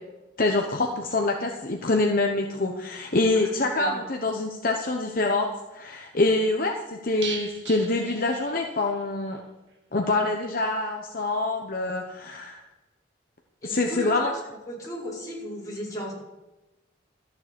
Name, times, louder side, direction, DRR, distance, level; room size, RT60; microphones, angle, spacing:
voice 1, 0.4-9.4 9.9-12.6 13.7-14.3, left 2 dB, 50° left, 2 dB, 1.0 m, -25 dB
sound 1, 7.2-9.0 9.3-9.4 9.7-9.8, right 5 dB, 75° right, 2.0 m, -38 dB
voice 2, 13.6-14.1 14.7-16.1, left 1 dB, 20° left, -6 dB, 5.1 m, -34 dB
13.5 x 7.0 x 8.1 m, 1.0 s
head